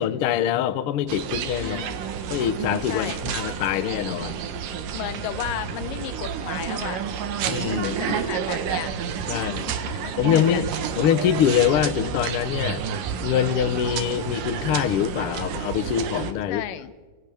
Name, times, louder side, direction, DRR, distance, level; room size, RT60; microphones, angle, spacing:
voice 1, 0.0-1.9 2.3-4.4 7.4-8.2 9.3-9.6 10.2-10.7 11.0-12.8 13.2-16.6, left 9 dB, 75° left, 12 dB, 1.3 m, -24 dB
sound 1, 1.1-16.3, right 7 dB, 80° right, 2.9 m, -30 dB
voice 2, 1.6-2.0 2.9-3.2 4.9-7.0 7.8-8.9 9.3-10.7 16.5-16.9, left 11 dB, 90° left, 12 dB, 2.6 m, -34 dB
29.5 x 26.5 x 3.5 m, 1.4 s
omnidirectional pair, 3.7 m